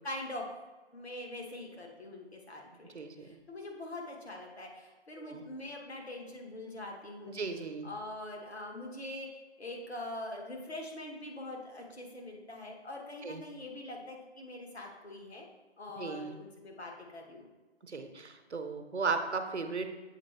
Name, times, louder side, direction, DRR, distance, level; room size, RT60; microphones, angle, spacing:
voice 1, 0.0-0.4 0.9-2.9 3.2-7.4 7.8-15.5 15.8-17.5, left 1 dB, 70° left, 0 dB, 1.3 m, -43 dB
voice 2, 2.9-3.4 5.2-5.4 7.3-7.9 13.2-13.4 16.0-16.4 17.8-19.9, right 4 dB, 80° right, 6 dB, 0.7 m, -36 dB
7.4 x 4.0 x 3.3 m, 1.2 s
figure-of-eight pair, 150°, 34 cm